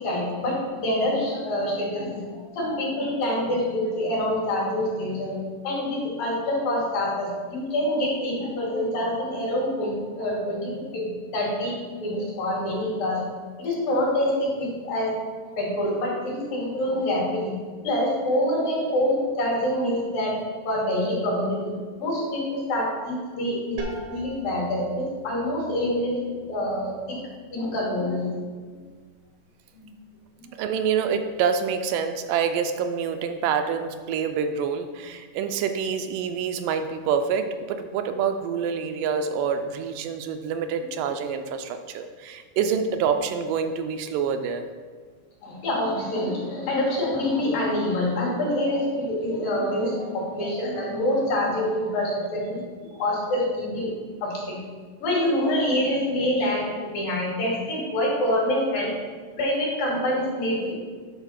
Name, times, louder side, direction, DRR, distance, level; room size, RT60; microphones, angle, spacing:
voice 1, 0.0-11.7 12.0-13.2 13.6-15.2 15.4-17.5 17.8-27.2 27.5-28.8 29.7-29.9 30.4-30.5 45.4-52.6 52.9-53.9 54.2-54.6 55.0-58.9 59.4-60.7, left 1 dB, 75° left, -5 dB, 4.6 m, -26 dB
sound 1, 23.8-29.3, right 3 dB, 65° right, 1.2 m, -42 dB
voice 2, 30.6-44.6, right 6 dB, 80° right, 7 dB, 2.1 m, -26 dB
11.5 x 4.1 x 5.7 m, 1.5 s
omnidirectional pair, 4.0 m